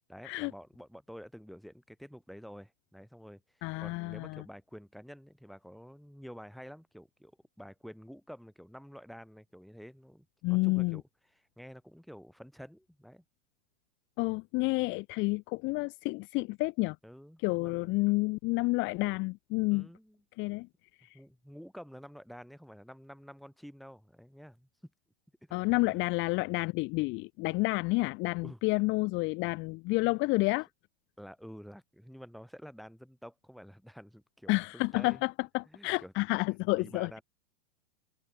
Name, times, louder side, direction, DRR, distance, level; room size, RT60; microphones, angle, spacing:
voice 1, 0.1-3.4 3.8-7.3 7.6-11.0 11.4-13.2 17.0-17.9 19.7-20.2 21.1-24.9 25.9-26.1 28.4-28.6 31.2-35.2 35.7-36.1 36.8-37.2, equal, ahead, 7.9 m, -49 dB
voice 2, 3.6-4.4 10.4-11.0 14.2-17.0 17.4-19.9 20.4-20.7 21.0-21.2 25.5-30.7 34.5-37.2, left 24 dB, 30° left, 1.4 m, -30 dB
supercardioid pair, 150°, 37 cm